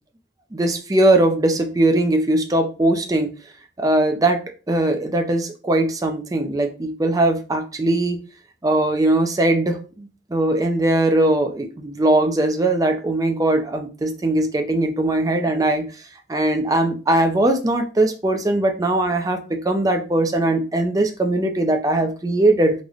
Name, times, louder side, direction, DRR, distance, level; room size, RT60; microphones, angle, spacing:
voice 1, 0.5-3.3 3.8-4.4 4.7-8.2 8.6-16.0 16.3-22.7, right 1 dB, 15° right, 5 dB, 0.4 m, -20 dB
3.8 x 2.1 x 3.0 m, 0.35 s
head